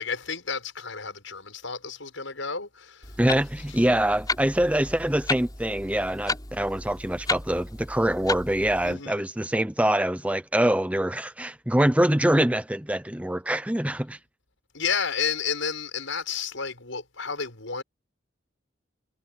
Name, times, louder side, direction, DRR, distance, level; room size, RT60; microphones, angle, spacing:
voice 1, 0.0-3.2 8.8-9.2 14.7-17.8, left 6 dB, 80° left, 6.4 m, -31 dB
Clock, 3.0-8.9, left 3 dB, 20° left, 5.0 m, -34 dB
voice 2, 3.2-14.2, right 1 dB, 5° right, 0.7 m, -24 dB
head